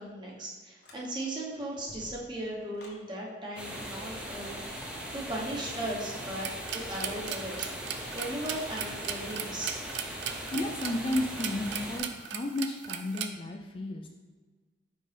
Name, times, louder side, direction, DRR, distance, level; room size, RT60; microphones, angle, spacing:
voice 1, 0.0-7.7 8.1-9.8, right 1 dB, 25° right, -3 dB, 1.1 m, -37 dB
sound 1, 0.8-1.4 1.7-3.1 5.6-5.9 8.1-8.4, left 1 dB, 70° left, 1.2 m, -52 dB
sound 2, 3.6-12.0, equal, 5° right, 0.7 m, -40 dB
sound 3, 6.4-13.3, right 9 dB, 75° right, 0.4 m, -37 dB
voice 2, 10.5-14.1, left 1 dB, 30° left, 3 dB, 0.4 m, -33 dB
5.4 x 5.2 x 3.4 m, 1.4 s
head